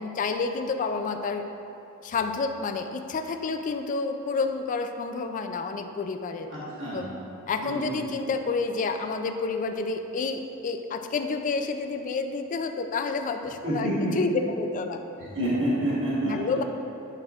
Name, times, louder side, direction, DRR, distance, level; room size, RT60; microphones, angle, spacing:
voice 1, 0.0-1.4 2.0-6.5 6.9-7.1 7.5-15.0 16.2-16.6, left 4 dB, 35° left, 7 dB, 0.3 m, -29 dB
voice 2, 6.5-7.0 7.6-8.0 13.6-14.1 15.3-16.5, right 1 dB, 60° right, -9 dB, 1.5 m, -28 dB
10.5 x 4.1 x 2.4 m, 2.8 s
head